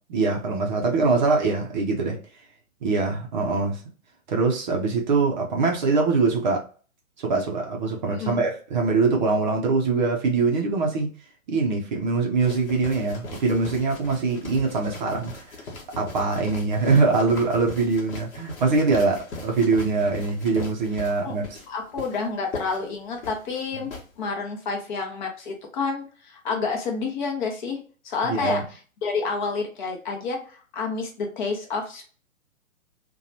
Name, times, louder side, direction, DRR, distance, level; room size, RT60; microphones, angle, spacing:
voice 1, 0.1-2.2 2.8-3.8 4.3-6.6 7.2-11.1 11.5-15.4 16.0-21.6 28.3-28.6, right 4 dB, 35° right, 1 dB, 0.5 m, -23 dB
voice 2, 8.1-8.4 21.2-21.3 21.7-23.9 24.2-27.8 28.0-28.6 29.0-32.0, left 4 dB, 35° left, 2 dB, 0.7 m, -29 dB
sound 1, 12.4-24.1, left 3 dB, 55° left, 1.0 m, -40 dB
2.8 x 2.2 x 2.7 m, 0.39 s
figure-of-eight pair, 125°, 41 cm